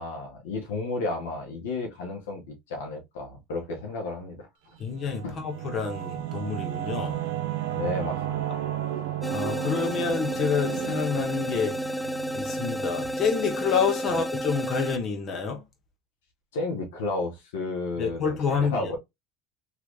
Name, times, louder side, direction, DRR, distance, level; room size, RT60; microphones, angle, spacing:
voice 1, 0.0-4.5 5.2-5.4 7.7-8.4 14.0-14.2 16.5-19.0, left 3 dB, 90° left, 1.2 m, -32 dB
voice 2, 4.8-7.2 9.3-11.8 12.3-15.6 18.0-18.9, left 5 dB, 45° left, 1.3 m, -28 dB
Singing / Musical instrument, 4.8-14.0, right 12 dB, 80° right, 0.7 m, -34 dB
sound 1, 9.2-15.0, equal, 5° left, 0.3 m, -31 dB
3.2 x 3.1 x 2.5 m
supercardioid pair, 100°, 0 cm